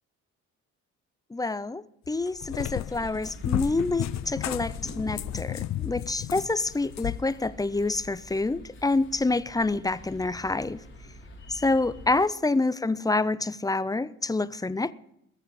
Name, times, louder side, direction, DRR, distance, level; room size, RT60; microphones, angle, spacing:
voice 1, 1.3-10.8 11.5-14.9, left 3 dB, 10° left, 0.5 m, -27 dB
Cat, 2.1-7.2, left 13 dB, 65° left, 0.6 m, -33 dB
sound 1, 2.8-12.1, left 2 dB, 40° left, 3.5 m, -45 dB
21.0 x 7.1 x 5.4 m
cardioid pair, 90°, 30 cm